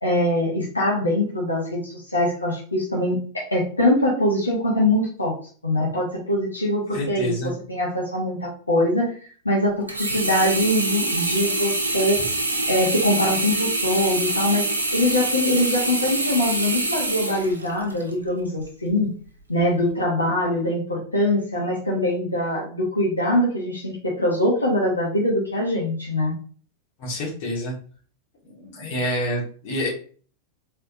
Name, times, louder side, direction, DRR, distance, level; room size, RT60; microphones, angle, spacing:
voice 1, 0.0-5.4 5.6-9.2 9.4-12.2 12.7-14.7 14.9-19.1 19.5-26.3, left 1 dB, 80° left, -4 dB, 1.3 m, -23 dB
voice 2, 6.9-7.5 27.0-27.7 28.4-29.9, left 1 dB, 45° left, -1 dB, 1.8 m, -28 dB
Sink (filling or washing), 9.9-18.1 18.7-18.8, right 2 dB, 80° right, 0.7 m, -25 dB
4.3 x 3.5 x 2.7 m, 0.42 s
figure-of-eight pair, 90°, 0 cm